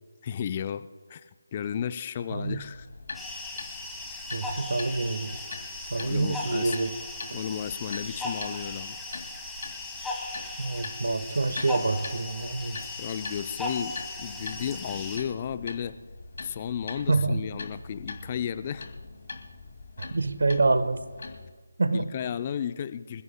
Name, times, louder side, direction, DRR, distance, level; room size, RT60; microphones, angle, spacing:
voice 1, 0.2-1.2 1.5-2.9 6.0-6.8 7.3-9.0 13.0-16.0 16.4-18.9 21.9-23.2, left 8 dB, 30° left, 12 dB, 0.5 m, -33 dB
voice 2, 2.3-2.6 4.3-5.4 5.9-7.0 10.6-12.9 17.1-17.4 20.0-21.0 21.8-22.1, right 3 dB, 60° right, 11 dB, 1.2 m, -27 dB
sound 1, 2.4-21.5, left 3 dB, 50° left, 2.2 m, -43 dB
sound 2, 3.1-15.2, left 2 dB, 5° left, 1.5 m, -37 dB
27.0 x 16.0 x 2.2 m, 1.4 s
figure-of-eight pair, 155°, 0 cm